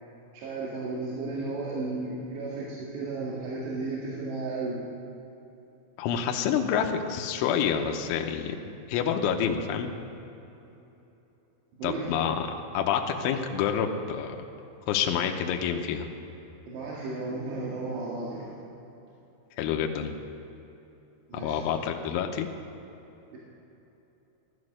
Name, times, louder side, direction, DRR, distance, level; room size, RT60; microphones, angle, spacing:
voice 1, 0.3-4.8 10.6-10.7 11.8-12.3 16.7-18.5 21.3-21.6 23.3-23.4, right 3 dB, 65° right, -6 dB, 3.8 m, -34 dB
voice 2, 6.0-9.9 11.8-14.4 14.9-16.1 19.6-20.1 21.3-22.5, left 8 dB, 85° left, 3 dB, 3.2 m, -28 dB
15.0 x 12.0 x 6.5 m, 3.0 s
omnidirectional pair, 5.7 m